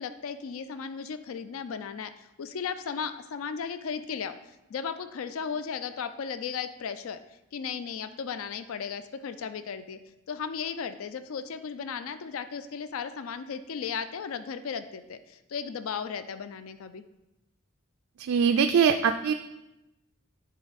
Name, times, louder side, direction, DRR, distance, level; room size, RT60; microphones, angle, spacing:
voice 1, 0.0-4.3 4.7-7.2 7.5-10.0 10.3-17.0, left 6 dB, 80° left, 11 dB, 0.4 m, -35 dB
voice 2, 18.2-19.3, right 6 dB, 80° right, 7 dB, 0.3 m, -22 dB
10.5 x 4.2 x 4.0 m, 0.94 s
head